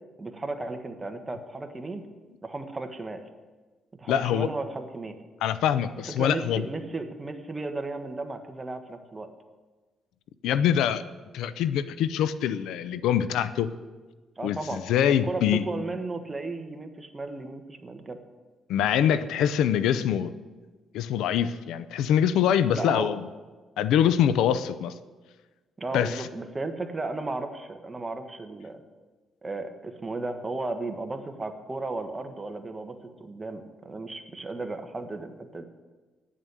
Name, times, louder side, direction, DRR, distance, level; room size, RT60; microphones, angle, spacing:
voice 1, 0.2-2.0 2.4-3.2 4.0-5.2 6.2-9.3 14.4-14.8 15.1-18.2 22.7-23.1 25.8-28.8 29.4-35.6, right 3 dB, 25° right, 6 dB, 1.3 m, -35 dB
voice 2, 4.1-4.5 5.4-6.6 10.4-11.0 11.3-13.7 14.4-15.7 18.7-20.3 20.9-23.2 23.8-24.9 25.9-26.3, left 9 dB, 85° left, 14 dB, 0.5 m, -24 dB
10.0 x 7.4 x 8.2 m, 1.3 s
cardioid pair, 90°, 0 cm